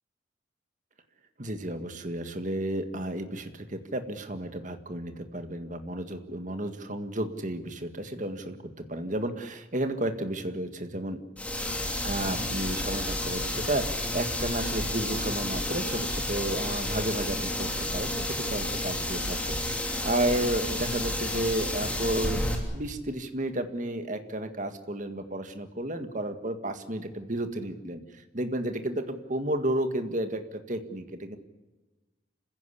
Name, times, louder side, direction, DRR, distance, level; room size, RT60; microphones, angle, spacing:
voice 1, 1.4-11.2 12.0-28.0 28.3-31.4, right 1 dB, 40° right, 8 dB, 1.8 m, -32 dB
sound 1, 11.4-22.6, left 1 dB, 5° left, 3.0 m, -31 dB
27.5 x 15.5 x 8.4 m, 1.2 s
head